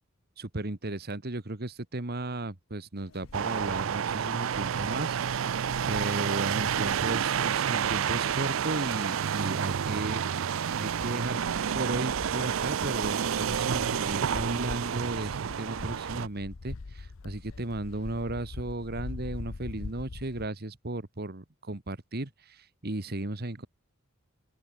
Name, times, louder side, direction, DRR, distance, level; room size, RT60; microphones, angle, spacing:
voice 1, 0.4-5.5 5.9-11.5 11.7-23.7, right 2 dB, 50° right, 1.6 m, -35 dB
sound 1, 3.0-20.5, left 3 dB, 85° left, 0.8 m, -44 dB
sound 2, 3.3-16.3, right 8 dB, 80° right, 0.5 m, -29 dB
open air
head